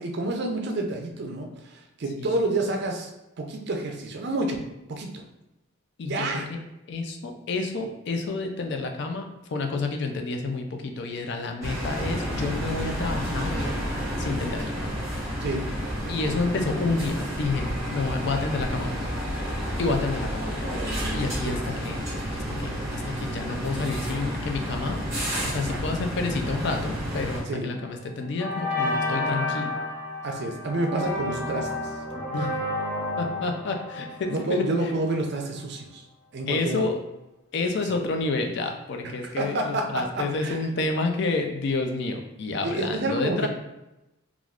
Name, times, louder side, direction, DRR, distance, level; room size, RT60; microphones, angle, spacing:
voice 1, 0.0-3.1 3.4-5.2 6.1-6.5 15.4-15.6 21.4-21.6 25.6-25.8 27.5-27.7 30.2-31.9 34.3-36.0 36.3-36.9 37.8-38.0 39.0-40.7 42.6-43.5, right 2 dB, 50° right, 3 dB, 0.4 m, -29 dB
voice 2, 6.0-6.6 6.9-9.2 9.5-13.6 14.2-15.0 16.1-19.0 19.8-20.8 21.1-22.0 22.3-25.0 25.4-29.7 32.3-32.5 33.2-34.6 36.5-37.0 37.5-43.5, left 3 dB, 55° left, 5 dB, 0.3 m, -29 dB
sound 1, 11.6-27.4, equal, 15° right, 1.0 m, -30 dB
sound 2, 27.6-27.9 28.4-35.2, left 2 dB, 20° left, 0.8 m, -31 dB
3.3 x 2.4 x 2.4 m, 0.94 s
head